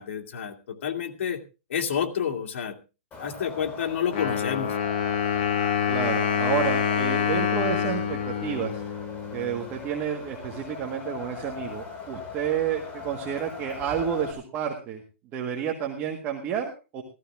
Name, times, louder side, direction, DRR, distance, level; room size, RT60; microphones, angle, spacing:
voice 1, 0.0-1.4 1.7-2.8 3.2-4.7, left 8 dB, 65° left, 4 dB, 2.2 m, -29 dB
Wind, 3.1-14.3, left 5 dB, 15° left, 2.3 m, -40 dB
Wind instrument woodwind instrument, 4.1-9.8, left 8 dB, 45° left, 2.0 m, -26 dB
voice 2, 5.9-8.8 9.3-15.0 15.3-17.0, right 8 dB, 25° right, 2 dB, 1.7 m, -30 dB
15.0 x 14.0 x 3.6 m, 0.30 s
hypercardioid pair, 165°, 7 cm